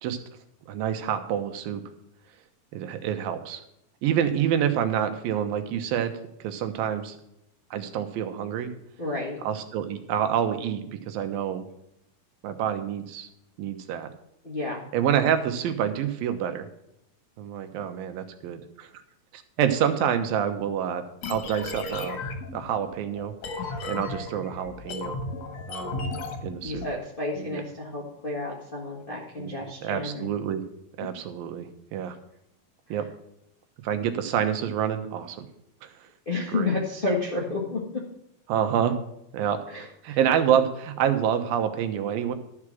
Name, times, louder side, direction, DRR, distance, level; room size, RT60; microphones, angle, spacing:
voice 1, 0.7-1.8 2.7-3.6 4.0-6.1 6.4-7.2 7.7-8.7 9.4-11.7 12.4-13.3 13.6-14.1 14.9-16.7 17.4-18.9 19.3-21.0 21.3-22.2 22.5-25.2 25.7-26.0 26.4-26.9 27.4-27.6 29.4-30.6 31.0-32.2 32.9-33.1 33.8-35.5 35.8-35.9 36.5-36.7 38.5-39.0 39.3-39.6 40.0-42.3, right 9 dB, 80° right, 8 dB, 2.7 m, -27 dB
voice 2, 9.0-9.4 14.4-14.8 26.6-30.3 31.0-31.1 32.9-33.0 36.2-37.8 39.7-40.2, left 2 dB, 75° left, -3 dB, 0.5 m, -31 dB
sound 1, 21.2-26.9, left 3 dB, 60° left, 2.0 m, -35 dB
12.0 x 4.9 x 7.5 m, 0.78 s
omnidirectional pair, 4.1 m